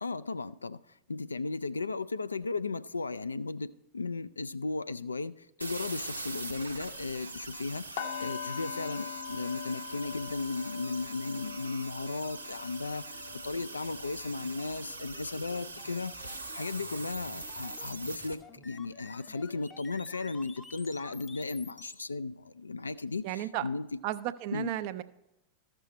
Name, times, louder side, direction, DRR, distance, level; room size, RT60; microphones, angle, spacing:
voice 1, 0.0-0.8 1.1-24.0 24.5-24.7, left 3 dB, 80° left, 0.3 m, -36 dB
sound 1, 5.6-18.3, right 2 dB, 85° right, 0.7 m, -42 dB
sound 2, 8.0-17.9 18.2-18.5 18.9-19.1, left 8 dB, 60° left, 0.9 m, -44 dB
sound 3, 11.9-22.0, left 4 dB, 15° left, 0.6 m, -54 dB
voice 2, 23.2-23.6 24.0-25.0, right 14 dB, 45° right, 0.5 m, -33 dB
14.0 x 6.1 x 4.2 m
figure-of-eight pair, 90°, 0 cm